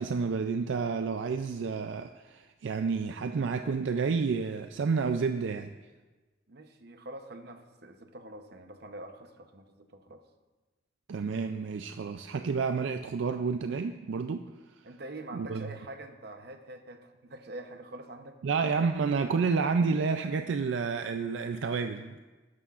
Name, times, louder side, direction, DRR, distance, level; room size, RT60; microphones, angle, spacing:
voice 1, 0.0-5.7 11.1-14.5 15.3-15.7 18.4-22.2, right 5 dB, 80° right, 7 dB, 0.4 m, -30 dB
voice 2, 6.5-10.2 14.8-18.4, right 1 dB, 60° right, 6 dB, 0.9 m, -45 dB
13.0 x 11.0 x 2.5 m, 1.3 s
head